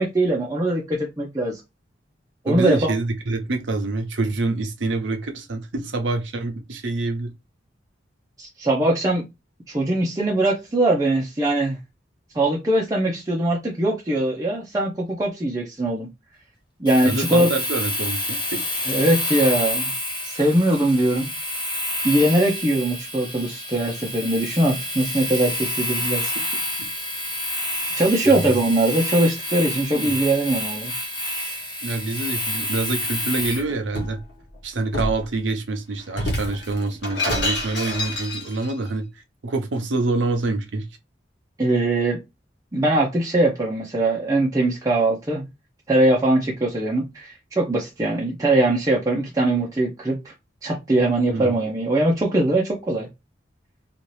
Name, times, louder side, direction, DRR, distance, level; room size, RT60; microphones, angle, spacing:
voice 1, 0.0-1.6 2.4-2.9 8.4-9.2 9.7-11.8 12.3-16.1 16.8-17.5 18.9-19.9 20.2-21.3 22.0-26.3 27.9-30.9 41.6-42.2 42.7-45.4 45.9-50.2 50.6-53.1, right 1 dB, 20° right, 0.6 m, -21 dB
voice 2, 2.5-7.3 17.0-18.6 28.2-28.5 29.9-30.2 31.8-34.2 34.6-39.1 39.4-40.9 51.3-51.5, right 3 dB, 80° right, 0.7 m, -26 dB
Domestic sounds home sounds, 16.9-33.7, left 1 dB, 25° left, 1.1 m, -28 dB
Shatter, 33.3-34.2 34.9-35.2 36.1-38.7, left 1 dB, 65° left, 1.2 m, -28 dB
2.7 x 2.4 x 3.1 m
head